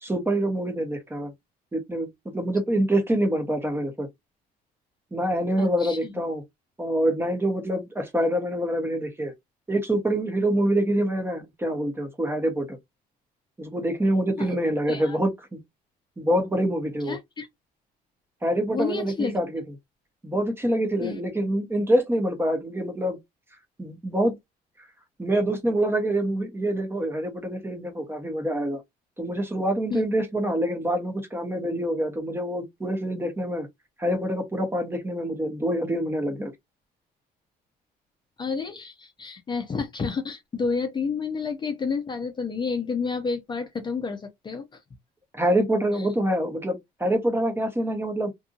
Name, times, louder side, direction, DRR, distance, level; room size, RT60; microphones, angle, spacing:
voice 1, 0.0-1.3 1.7-4.1 5.1-6.4 6.8-9.3 9.7-12.8 13.6-15.6 16.2-17.2 18.4-19.6 20.2-23.2 23.8-24.4 25.2-28.8 29.2-33.7 34.0-36.5 45.3-48.3, right 1 dB, 15° right, 0.8 m, -26 dB
voice 2, 5.6-6.1 14.4-14.5 14.9-15.2 17.1-17.5 18.7-19.4 21.0-21.2 29.9-30.0 38.4-44.8, left 5 dB, 25° left, 0.6 m, -30 dB
2.6 x 2.6 x 2.4 m
cardioid pair, 110°, 17 cm